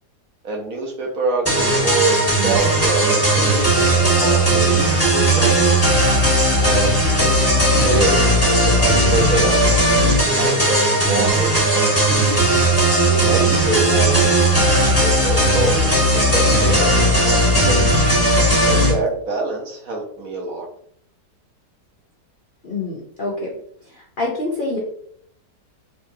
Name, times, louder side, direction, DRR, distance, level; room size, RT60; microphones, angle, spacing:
voice 1, 0.4-5.8 6.6-12.4 13.1-17.4 17.6-18.0 18.6-20.7, right 2 dB, 60° right, -1 dB, 1.1 m, -26 dB
sound 1, 1.4-18.9, right 1 dB, 10° left, 0.7 m, -16 dB
voice 2, 22.6-23.5 23.8-24.8, left 2 dB, 80° left, -3 dB, 0.4 m, -26 dB
4.0 x 2.9 x 2.7 m, 0.66 s
omnidirectional pair, 1.9 m